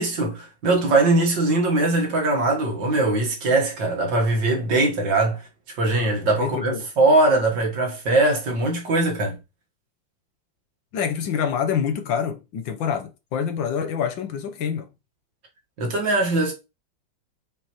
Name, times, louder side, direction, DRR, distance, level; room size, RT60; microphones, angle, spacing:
voice 1, 0.0-5.4 5.8-9.4 15.8-16.5, right 2 dB, 60° right, 2.2 m, -21 dB
voice 2, 6.4-6.9 10.9-14.9, left 7 dB, 70° left, 1.6 m, -26 dB
7.4 x 4.8 x 3.1 m
omnidirectional pair, 2.2 m